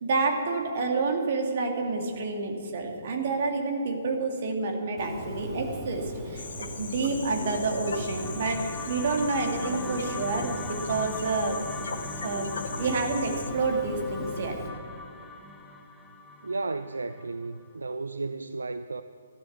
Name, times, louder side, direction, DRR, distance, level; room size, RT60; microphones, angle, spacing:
voice 1, 0.0-11.6 12.2-12.5 12.8-14.5, right 3 dB, 45° right, 2 dB, 2.6 m, -29 dB
Bird, 5.0-14.7, equal, 10° right, 2.3 m, -39 dB
sound 1, 6.4-13.5, left 4 dB, 55° left, 1.3 m, -40 dB
sound 2, 7.4-17.6, left 4 dB, 10° left, 1.1 m, -41 dB
voice 2, 16.4-19.0, right 3 dB, 70° right, 11 dB, 0.5 m, -33 dB
15.0 x 12.0 x 7.3 m, 2.1 s
figure-of-eight pair, 130°, 0 cm